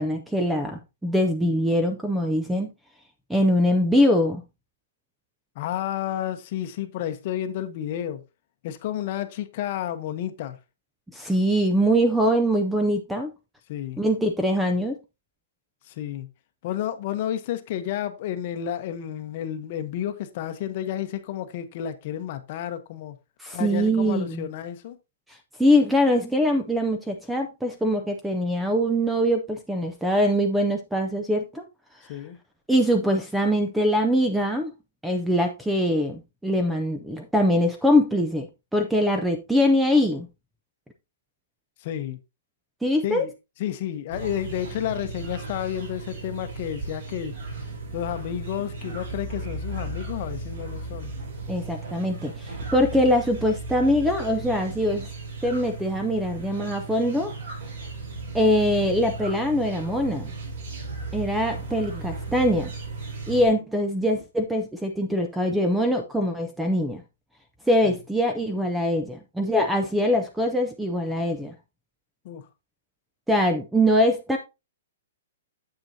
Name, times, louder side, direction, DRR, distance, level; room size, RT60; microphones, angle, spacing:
voice 1, 0.0-2.7 3.3-4.4 11.1-13.3 14.0-14.9 23.4-24.5 25.6-31.6 32.7-34.7 35.0-38.5 38.7-40.3 42.8-43.2 51.5-55.1 55.4-57.3 58.3-60.3 61.1-62.7 63.3-67.0 67.7-71.5 73.3-74.4, equal, ahead, 0.4 m, -23 dB
voice 2, 5.6-8.2 8.6-10.6 13.7-14.0 15.9-16.3 16.6-23.2 23.5-25.0 32.1-32.4 41.8-42.2 43.0-43.3 43.6-47.3 47.9-51.1 67.8-67.9 72.2-72.5, left 11 dB, 35° left, 0.8 m, -31 dB
sound 1, 44.1-63.5, right 3 dB, 55° right, 5.4 m, -36 dB
9.0 x 7.5 x 2.7 m
hypercardioid pair, 180°, 0 cm